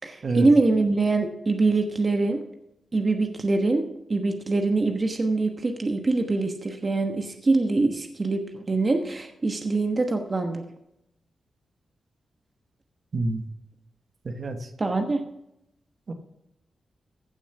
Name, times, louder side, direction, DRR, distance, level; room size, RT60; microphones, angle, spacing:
voice 1, 0.0-2.4 2.9-3.8 4.1-10.6 14.8-15.2, right 3 dB, 40° right, 4 dB, 1.2 m, -24 dB
voice 2, 13.1-13.5 14.2-14.7 16.1-16.2, right 2 dB, 55° right, 6 dB, 1.4 m, -27 dB
15.5 x 7.2 x 6.0 m, 0.84 s
cardioid pair, 75°, 0 cm